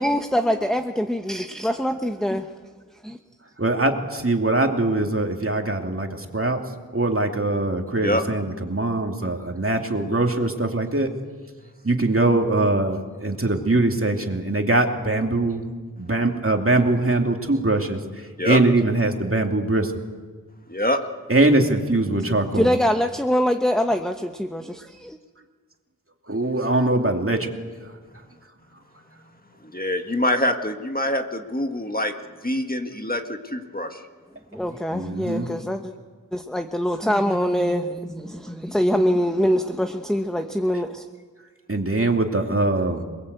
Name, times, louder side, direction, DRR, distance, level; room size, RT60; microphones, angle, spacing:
voice 1, 0.0-2.5 3.0-3.2 22.3-25.2 34.5-35.9 36.3-41.0, equal, ahead, 6 dB, 1.0 m, -24 dB
voice 2, 3.6-6.6 6.9-11.1 11.8-15.7 16.0-19.9 21.3-22.7 26.3-27.5 34.9-35.5 41.7-43.0, right 2 dB, 40° right, 3 dB, 2.6 m, -22 dB
voice 3, 29.6-32.1 32.4-34.0, left 1 dB, 25° left, 5 dB, 1.7 m, -25 dB
27.5 x 21.0 x 8.2 m, 1.5 s
wide cardioid pair, 60°, 35 cm